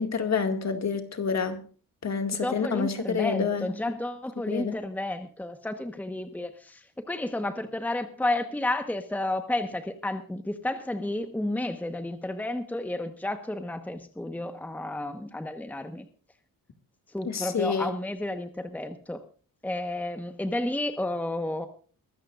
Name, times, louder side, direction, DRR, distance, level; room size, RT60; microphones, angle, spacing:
voice 1, 0.0-1.6 2.0-3.7 4.5-4.8 17.3-17.9, left 6 dB, 45° left, 2.1 m, -28 dB
voice 2, 2.4-16.1 17.1-19.2 19.6-21.7, left 1 dB, 5° left, 1.2 m, -31 dB
23.0 x 13.5 x 2.5 m
wide cardioid pair, 135°, 36 cm